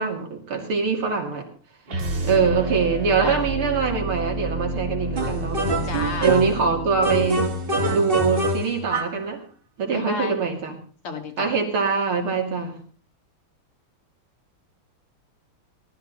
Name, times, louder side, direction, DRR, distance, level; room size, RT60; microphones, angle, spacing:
voice 1, 0.0-1.5 2.2-5.7 6.2-7.5 7.9-9.4 9.8-10.8 11.4-12.8, right 5 dB, 75° right, 2 dB, 3.5 m, -23 dB
voice 2, 1.9-2.5 3.2-3.4 5.8-6.3 9.8-10.4 11.0-11.6, left 4 dB, 85° left, 3 dB, 3.2 m, -32 dB
sound 1, 1.9-8.0, right 2 dB, 45° right, 2.4 m, -30 dB
sound 2, 5.2-6.7 7.0-9.2, right 1 dB, 30° right, 1.6 m, -25 dB
19.0 x 13.0 x 4.1 m, 0.42 s
omnidirectional pair, 2.4 m